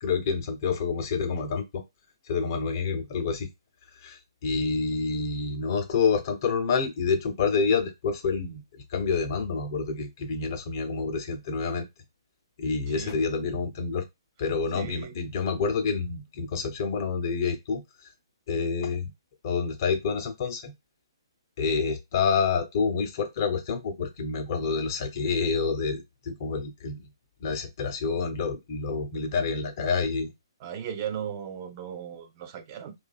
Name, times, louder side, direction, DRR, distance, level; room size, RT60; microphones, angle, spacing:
voice 1, 0.0-1.8 2.3-3.5 4.0-8.6 8.9-11.9 12.6-14.1 14.4-17.8 18.5-19.1 19.4-20.7 21.6-27.0 27.4-30.3, left 5 dB, 45° left, 0.6 m, -28 dB
voice 2, 12.9-13.2 14.7-15.1 30.6-32.9, right 8 dB, 35° right, 0.4 m, -36 dB
2.7 x 2.3 x 2.2 m
hypercardioid pair, 135°, 2 cm